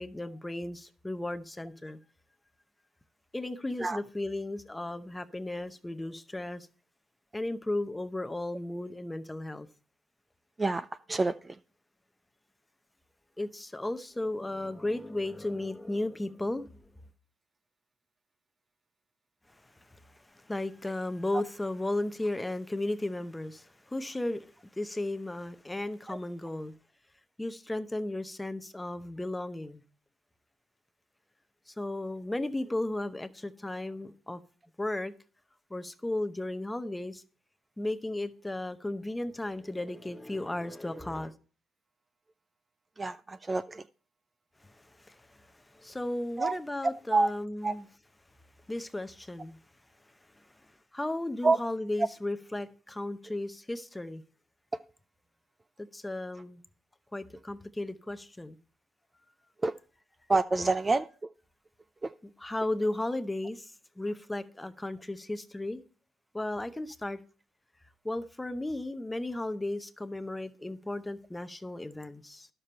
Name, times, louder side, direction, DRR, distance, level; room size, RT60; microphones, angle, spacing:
voice 1, 0.0-2.0 3.3-6.7 7.3-9.7 13.4-16.8 19.5-26.7 27.4-29.8 31.7-34.4 34.8-35.1 35.7-37.2 37.8-41.3 44.6-47.9 48.7-49.6 50.4-54.2 55.8-56.6 57.1-58.6 62.2-65.8 66.3-67.2 68.0-72.5, left 1 dB, 10° left, 0.7 m, -35 dB
voice 2, 10.6-11.3 26.1-26.2 43.0-43.8 46.4-46.6 47.1-47.3 47.6-47.7 51.4-51.6 59.6-59.7 60.3-61.1, right 3 dB, 20° right, 0.4 m, -27 dB
11.0 x 6.8 x 4.3 m
cardioid pair, 110°, 0 cm